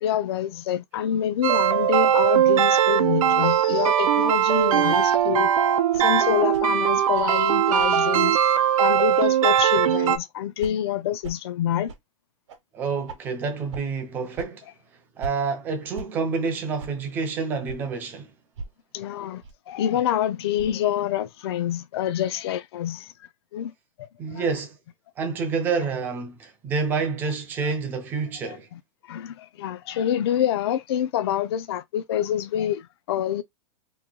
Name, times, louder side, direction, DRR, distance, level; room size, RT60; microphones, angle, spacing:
voice 1, 0.0-5.5 6.0-8.4 8.8-11.9 18.9-23.1 23.5-23.7 24.0-24.4 27.6-27.7 28.5-28.8 29.1-33.4, left 10 dB, 50° left, 0.4 m, -27 dB
sound 1, 1.4-10.2, right 10 dB, 85° right, 0.6 m, -20 dB
sound 2, 4.5-4.7 5.1-5.3 5.9-6.1 6.5-6.6 7.1-7.3 7.8-7.9 8.2-8.3 8.8-8.9 9.4-9.6 10.0-10.2 10.6-10.7 11.2-11.4 11.9-12.0 12.5-12.6 13.1-13.2 13.7-13.8 14.3-14.5 15.2-15.3 15.9-16.1 16.8-16.9 17.6-17.8 18.6-18.7 19.4-19.5 20.5-20.8, right 3 dB, 55° right, 1.0 m, -38 dB
voice 2, 12.7-14.7 15.2-18.3 24.2-24.8 25.2-28.7, right 5 dB, 10° right, 0.4 m, -28 dB
3.0 x 2.2 x 3.7 m
supercardioid pair, 170°, 17 cm